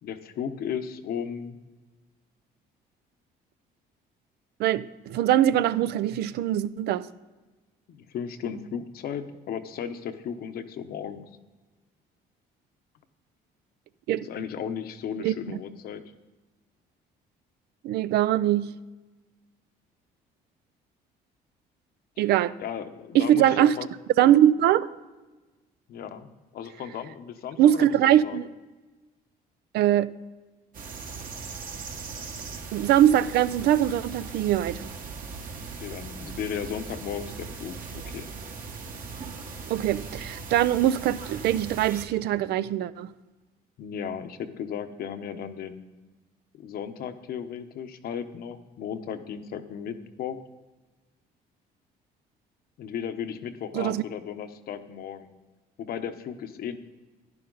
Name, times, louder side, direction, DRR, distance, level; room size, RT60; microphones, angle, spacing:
voice 1, 0.0-1.6 7.9-11.3 14.3-16.0 22.6-23.9 25.9-26.3 26.5-28.4 35.6-38.3 43.8-45.8 46.5-50.4 52.8-55.4 55.8-56.8, left 8 dB, 65° left, 1.0 m, -35 dB
voice 2, 4.6-7.1 14.1-14.3 15.2-15.3 17.8-18.8 22.2-22.6 23.1-23.8 24.2-24.9 27.6-28.5 29.7-30.2 32.7-34.9 39.7-43.1 53.7-54.0, right 11 dB, 75° right, 0.5 m, -22 dB
sound 1, 30.7-42.1, right 4 dB, 55° right, 1.7 m, -39 dB
11.0 x 10.5 x 3.9 m
cardioid pair, 110°, 17 cm